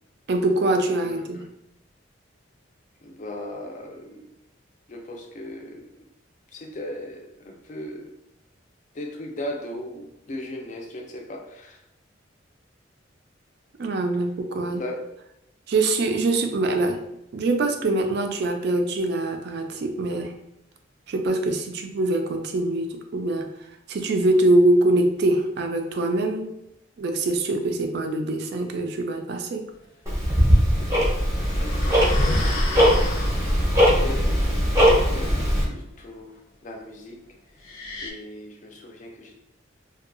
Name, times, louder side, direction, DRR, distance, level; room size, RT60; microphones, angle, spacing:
voice 1, 0.3-1.4 13.8-14.8 15.7-17.0 17.3-20.3 21.1-23.5 23.9-26.5 27.0-29.6, right 2 dB, 55° right, 5 dB, 0.3 m, -23 dB
voice 2, 0.9-1.5 3.0-4.3 4.9-6.1 6.5-8.1 8.9-11.8 14.7-15.0 30.7-31.0 31.5-33.1 33.9-34.5 34.9-37.6 38.0-39.3, left 1 dB, 40° left, 2 dB, 0.4 m, -38 dB
Tick-tock, 30.1-35.6, equal, 15° right, 0.6 m, -20 dB
sound 1, 31.3-33.7 37.6-38.1, left 1 dB, 90° left, 0.6 m, -29 dB
2.6 x 2.3 x 2.5 m, 0.81 s
head